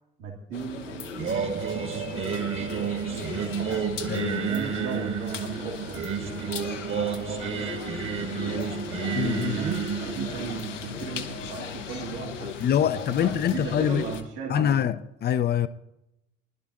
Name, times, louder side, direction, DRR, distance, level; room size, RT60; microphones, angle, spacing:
voice 1, 0.2-3.8 4.4-8.6 9.1-12.9 13.2-14.8, right 6 dB, 60° right, 1.7 m, -37 dB
sound 1, 0.5-14.2, left 6 dB, 80° left, 0.8 m, -38 dB
Singing, 1.2-12.3, right 7 dB, 35° right, 1.4 m, -31 dB
voice 2, 4.1-4.6 9.1-9.6 12.6-14.0 14.5-15.7, left 9 dB, 30° left, 0.5 m, -25 dB
20.0 x 11.0 x 2.6 m
figure-of-eight pair, 55°, 37 cm